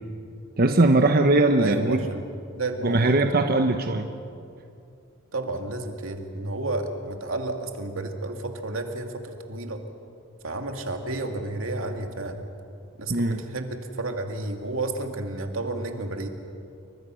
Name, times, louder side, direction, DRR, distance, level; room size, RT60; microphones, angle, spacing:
voice 1, 0.6-2.0 2.8-4.1 13.1-13.4, right 2 dB, 50° right, 6 dB, 1.0 m, -20 dB
voice 2, 1.6-2.3 2.5-3.1 5.3-9.8 10.4-12.4 13.0-16.3, right 2 dB, 85° right, 4 dB, 2.4 m, -31 dB
29.0 x 23.5 x 6.3 m, 2.5 s
head